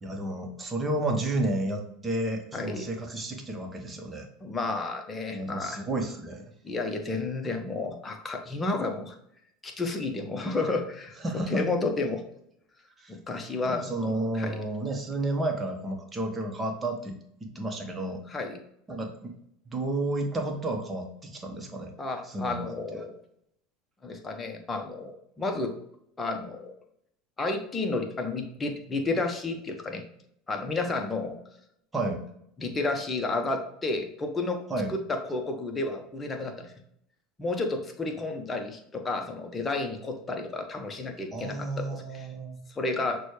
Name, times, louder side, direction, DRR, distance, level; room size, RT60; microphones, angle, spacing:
voice 1, 0.0-4.3 5.3-6.4 11.2-11.7 13.0-13.2 13.6-17.1 17.5-18.2 18.9-19.3 19.7-21.9 22.2-22.7 31.9-32.2 34.7-34.9 41.3-42.6, right 2 dB, 20° right, 3 dB, 0.9 m, -31 dB
voice 2, 2.5-2.9 4.4-5.8 6.6-9.2 9.6-11.2 11.5-12.2 13.1-13.8 14.3-14.6 18.3-18.6 22.0-23.1 24.0-25.7 26.2-26.7 27.4-30.0 30.5-31.4 32.6-34.6 34.9-36.7 37.4-42.3 42.7-43.2, left 3 dB, 20° left, 3 dB, 0.7 m, -31 dB
6.1 x 2.2 x 3.1 m, 0.70 s
hypercardioid pair, 85°, 0 cm